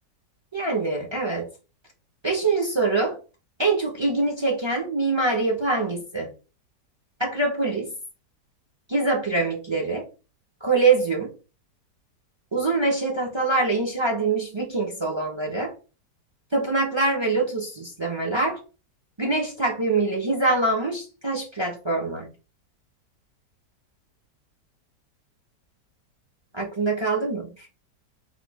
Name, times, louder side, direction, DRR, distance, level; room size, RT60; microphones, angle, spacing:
voice 1, 0.5-1.5 2.2-3.2 3.6-6.3 7.2-7.9 8.9-10.0 10.6-11.3 12.5-15.7 16.5-18.6 19.2-22.3 26.5-27.5, right 3 dB, 25° right, 0 dB, 0.7 m, -24 dB
4.2 x 2.4 x 4.8 m, 0.33 s
omnidirectional pair, 1.9 m